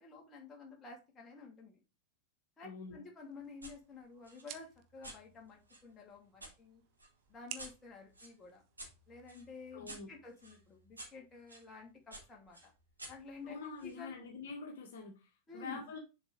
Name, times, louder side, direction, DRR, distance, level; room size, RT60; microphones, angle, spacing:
voice 1, 0.0-1.8 2.6-4.7 4.9-6.8 7.3-8.6 9.1-12.7 13.1-14.2 15.5-15.9, left 4 dB, 20° left, 0 dB, 2.6 m, -51 dB
voice 2, 2.6-3.0 9.7-10.1 13.4-16.0, left 4 dB, 60° left, 1 dB, 1.7 m, -46 dB
sound 1, 3.2-9.2, right 11 dB, 40° right, 0.9 m, -55 dB
sound 2, 3.6-3.8 4.2-6.5 7.0-11.7 12.1-14.0, right 1 dB, 80° right, 2.5 m, -53 dB
7.1 x 5.3 x 3.2 m, 0.28 s
figure-of-eight pair, 90°, 0 cm